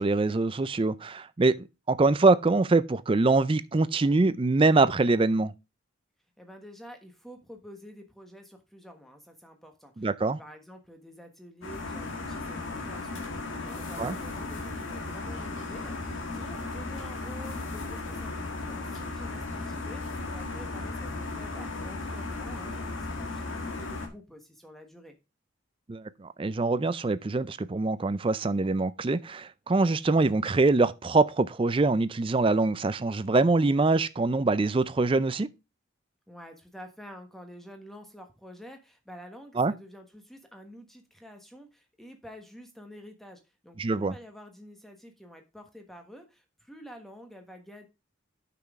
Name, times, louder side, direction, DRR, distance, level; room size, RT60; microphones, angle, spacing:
voice 1, 0.0-5.5 10.0-10.4 14.0-14.2 25.9-35.5 39.6-39.7 43.8-44.2, right 3 dB, 25° right, 0.4 m, -24 dB
voice 2, 6.4-25.1 36.3-47.9, equal, ahead, 1.2 m, -48 dB
sound 1, 11.6-24.1, left 3 dB, 70° left, 1.7 m, -36 dB
8.7 x 6.0 x 3.6 m
head